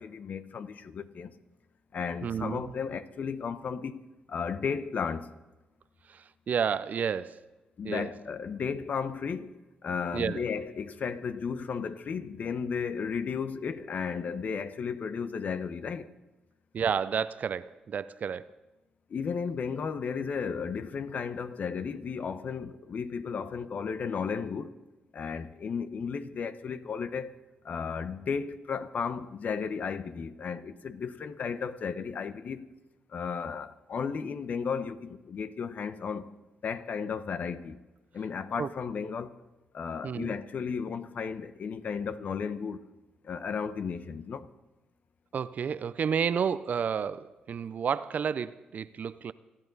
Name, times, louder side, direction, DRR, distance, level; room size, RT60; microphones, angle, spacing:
voice 1, 0.0-1.3 1.9-5.3 7.8-9.5 9.8-16.1 19.1-24.7 25.1-27.4 27.6-32.7 33.1-36.3 36.6-37.8 38.1-39.4 39.7-42.9 43.2-44.5, left 6 dB, 60° left, 1.0 m, -34 dB
voice 2, 2.2-2.7 6.1-7.4 7.8-8.1 10.1-10.4 16.7-18.5 38.6-38.7 40.0-40.3 45.3-49.3, right 7 dB, 55° right, 0.6 m, -31 dB
28.5 x 11.0 x 4.1 m
supercardioid pair, 55°, 3 cm